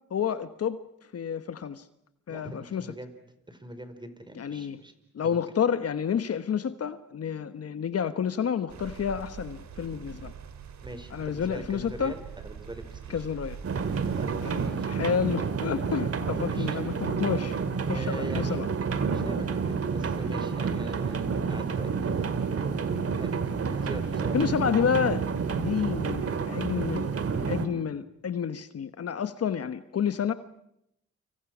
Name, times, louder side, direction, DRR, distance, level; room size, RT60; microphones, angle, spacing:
voice 1, 0.1-0.8 1.1-1.8 2.3-2.9 4.4-4.8 5.1-10.3 11.1-12.1 13.1-13.6 14.4-17.6 17.9-18.7 24.3-25.2 25.5-27.1 27.5-30.3, left 7 dB, 55° left, 11 dB, 1.2 m, -29 dB
voice 2, 2.3-3.1 3.5-4.9 5.2-5.4 10.8-13.3 14.1-14.3 14.6-14.9 16.5-16.8 17.8-18.6 19.1-22.3 22.6-23.3 23.7-24.5, right 1 dB, 15° right, 9 dB, 4.9 m, -42 dB
sound 1, 8.7-14.7, right 7 dB, 70° right, 2.7 m, -43 dB
sound 2, 13.6-27.7, right 5 dB, 50° right, 2.2 m, -29 dB
30.0 x 26.0 x 6.2 m, 0.78 s
cardioid pair, 70°, 30 cm